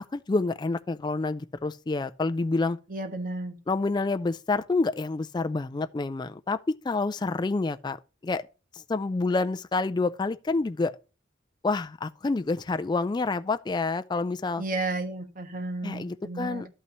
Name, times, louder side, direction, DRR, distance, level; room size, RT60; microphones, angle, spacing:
voice 1, 0.1-2.8 3.7-8.0 8.2-8.4 8.7-10.9 11.6-14.6 15.8-16.7, left 3 dB, 20° left, 0.3 m, -28 dB
voice 2, 2.9-3.6 14.6-16.7, right 2 dB, 45° right, 1.3 m, -33 dB
12.0 x 5.6 x 3.0 m
head